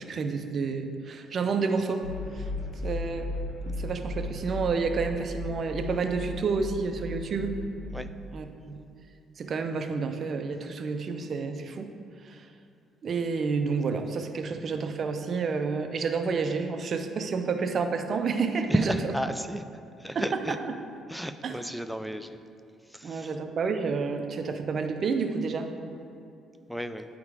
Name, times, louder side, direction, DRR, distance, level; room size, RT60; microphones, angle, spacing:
voice 1, 0.0-2.1 2.3-2.5 2.8-3.3 3.7-7.6 8.3-8.8 9.4-11.9 12.2-12.5 13.0-18.8 20.2-20.3 21.4-21.6 23.0-25.7, right 4 dB, 45° right, 6 dB, 0.6 m, -29 dB
sound 1, 2.0-8.2, left 2 dB, 75° left, 1.1 m, -36 dB
voice 2, 18.7-19.7 20.0-20.6 21.1-22.4 22.9-23.3 26.7-27.1, equal, ahead, 9 dB, 0.4 m, -32 dB
9.6 x 3.6 x 4.8 m, 2.5 s
cardioid pair, 100°, 0 cm